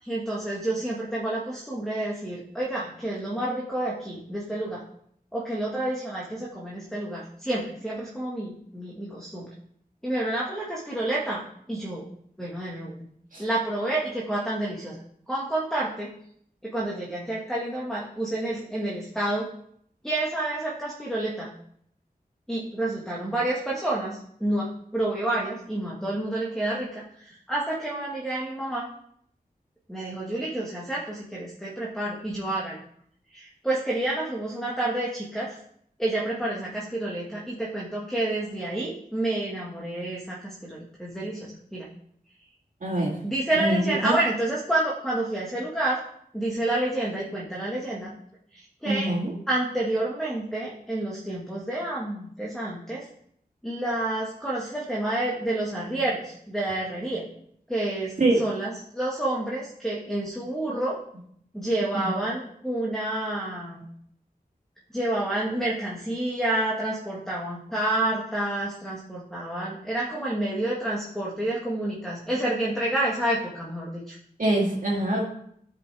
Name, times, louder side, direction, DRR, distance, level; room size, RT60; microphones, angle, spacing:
voice 1, 0.0-4.8 5.3-9.5 10.0-12.1 12.4-13.1 13.4-15.0 15.3-16.1 16.6-19.5 20.0-21.5 22.5-28.9 29.9-32.8 33.3-35.6 36.0-41.9 43.2-46.0 46.3-48.1 48.5-49.1 49.5-53.1 53.6-57.2 57.7-61.0 61.5-63.9 64.9-74.2, right 1 dB, 5° left, -5 dB, 1.6 m, -29 dB
voice 2, 42.8-43.2 43.6-44.1 48.8-49.3 58.2-58.4 61.9-62.1 74.4-75.2, right 1 dB, 55° right, -4 dB, 2.3 m, -24 dB
13.5 x 5.3 x 3.4 m, 0.68 s
wide cardioid pair, 95°, 16 cm